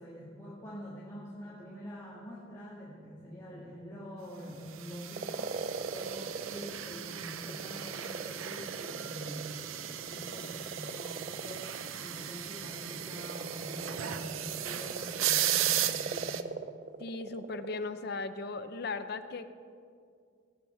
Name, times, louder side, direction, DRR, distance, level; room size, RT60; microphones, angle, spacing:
voice 1, 0.0-11.7 12.0-16.4, equal, 15° left, -7 dB, 1.6 m, -45 dB
sound 1, 4.8-16.4, right 11 dB, 90° right, 0.6 m, -36 dB
sound 2, 5.2-6.8 7.1-17.8, right 4 dB, 40° right, 0.4 m, -41 dB
voice 2, 17.0-19.5, left 3 dB, 50° left, 10 dB, 0.6 m, -37 dB
17.0 x 7.9 x 4.3 m, 2.3 s
head